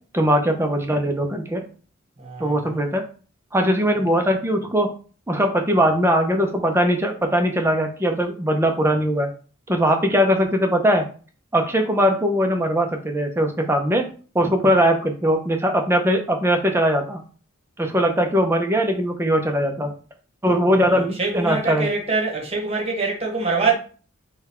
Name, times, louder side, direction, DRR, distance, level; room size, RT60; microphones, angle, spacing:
voice 1, 0.1-1.6 2.4-3.0 3.5-4.9 5.3-9.3 9.7-11.1 11.5-14.0 14.3-17.2 17.8-19.9 20.4-21.9, equal, 10° right, 0.6 m, -20 dB
voice 2, 2.2-2.8 20.9-23.7, right 4 dB, 30° right, 1.1 m, -24 dB
3.8 x 2.3 x 4.2 m
head